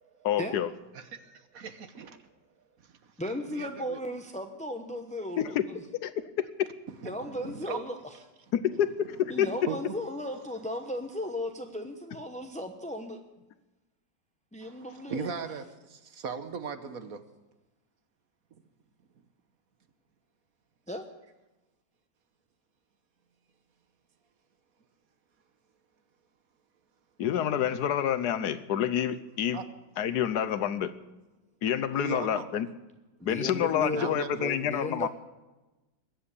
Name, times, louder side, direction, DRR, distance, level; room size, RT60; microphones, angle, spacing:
voice 1, 0.2-0.7 5.4-5.7 6.0-6.4 8.5-9.5 27.2-29.6 30.0-30.9 31.6-32.7 33.2-35.1, left 9 dB, 70° left, 14 dB, 1.2 m, -28 dB
voice 2, 0.9-2.1 3.5-4.0 7.0-7.8 9.2-9.3 9.7-9.8 14.6-17.2 29.5-29.7 31.9-32.6 33.9-34.6, right 6 dB, 60° right, 10 dB, 1.3 m, -38 dB
voice 3, 3.2-5.8 7.0-8.1 9.3-13.2 14.5-15.3 20.9-21.0 33.2-35.1, left 1 dB, 10° left, 5 dB, 0.4 m, -36 dB
21.0 x 8.0 x 8.3 m, 1.1 s
omnidirectional pair, 1.9 m